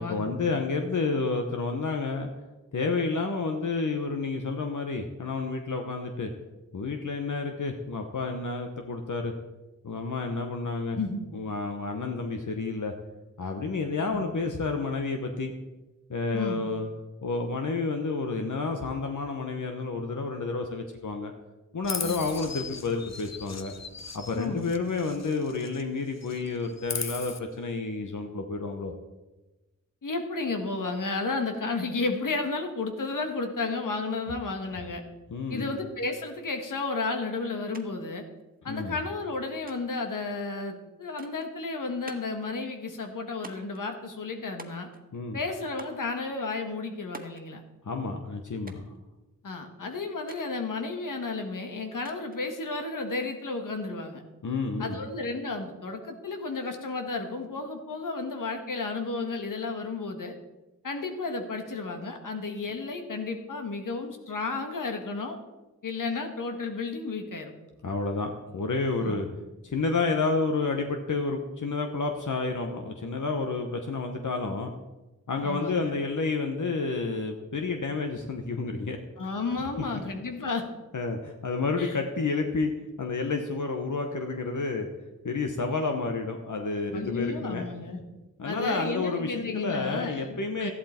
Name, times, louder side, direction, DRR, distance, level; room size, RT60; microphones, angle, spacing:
voice 1, 0.0-2.3 2.7-6.3 6.7-9.3 9.8-11.0 11.3-12.9 13.4-15.5 16.1-16.9 17.2-21.3 21.7-23.7 24.1-28.9 35.3-35.8 38.7-39.0 45.1-45.4 47.8-48.8 54.4-55.0 67.8-69.3 69.6-74.7 75.3-79.0 80.9-82.7 83.0-84.9 85.2-87.7 88.4-90.7, left 3 dB, 75° left, 4 dB, 1.2 m, -30 dB
Chirp tweet, 21.8-25.9 26.2-27.4, left 5 dB, 55° left, 1.0 m, -38 dB
voice 2, 24.3-24.8 30.0-35.0 35.5-38.2 38.6-44.9 45.3-47.6 49.4-54.2 54.8-60.3 60.8-65.4 65.8-67.5 69.0-69.2 75.4-75.9 79.2-80.6 81.8-81.9 86.9-88.0 88.4-90.7, left 3 dB, 90° left, 5 dB, 1.6 m, -32 dB
sound 1, 37.7-37.9 38.1-38.9 39.7-40.1 41.2-41.5 42.1-42.4 43.4-43.8 44.6-45.1 45.8-46.1 47.1-47.5 48.7-49.0 50.3-50.5 52.1-52.5, right 2 dB, 30° right, 1.5 m, -46 dB
13.5 x 11.5 x 4.4 m, 1.1 s
wide cardioid pair, 60°, 31 cm